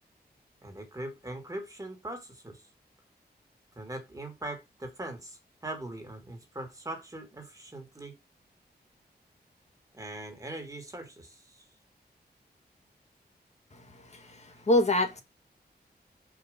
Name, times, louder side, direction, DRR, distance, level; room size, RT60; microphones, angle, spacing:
voice 1, 0.6-2.6 3.8-8.1 9.9-11.6, right 1 dB, 20° right, 2.1 m, -41 dB
voice 2, 13.7-15.2, left 1 dB, 40° left, 1.8 m, -27 dB
5.1 x 5.0 x 5.1 m
wide cardioid pair, 115°, 17 cm